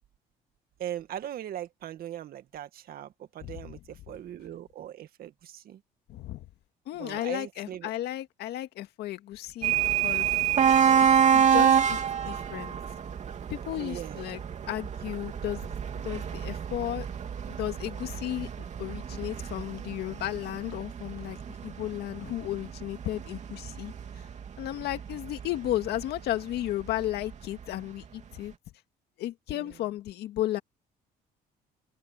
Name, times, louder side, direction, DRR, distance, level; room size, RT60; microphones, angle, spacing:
voice 1, 0.8-5.8 7.0-7.9 10.6-11.1 13.8-14.3 29.5-29.7, right 11 dB, 60° right, 2.0 m, -40 dB
voice 2, 3.4-3.8 6.1-6.5 6.9-9.7 10.0-10.3 11.0-11.1 11.3-12.0 12.3-12.7 13.5-14.4 14.7-15.7 16.0-17.1 17.5-18.5 18.8-24.3 24.6-28.5 29.2-30.6, left 14 dB, 75° left, 2.1 m, -34 dB
sound 1, 9.6-27.3, right 8 dB, 45° right, 3.0 m, -28 dB
open air
cardioid pair, 110°, 17 cm